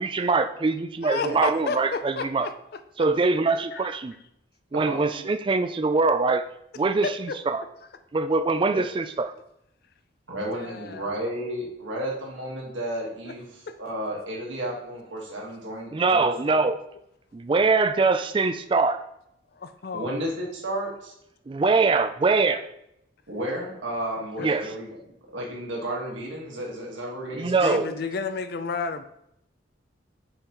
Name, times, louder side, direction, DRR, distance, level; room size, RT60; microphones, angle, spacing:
voice 1, 0.0-2.5 3.0-4.1 4.7-6.4 6.8-7.6 8.1-9.3 15.9-16.8 17.3-19.0 21.5-22.6 24.4-24.7 27.3-27.9, right 3 dB, 25° right, 10 dB, 0.3 m, -23 dB
voice 2, 1.0-2.5 3.0-3.1 3.7-3.9 5.1-5.3 7.0-7.4 10.5-11.3 13.7-13.8 19.6-20.2 24.4-24.5 27.6-29.0, left 4 dB, 50° left, 9 dB, 0.4 m, -32 dB
voice 3, 10.3-16.5 19.9-21.1 23.3-24.9 25.3-28.0, right 1 dB, 80° right, -2 dB, 1.7 m, -33 dB
6.9 x 5.5 x 3.0 m, 0.78 s
head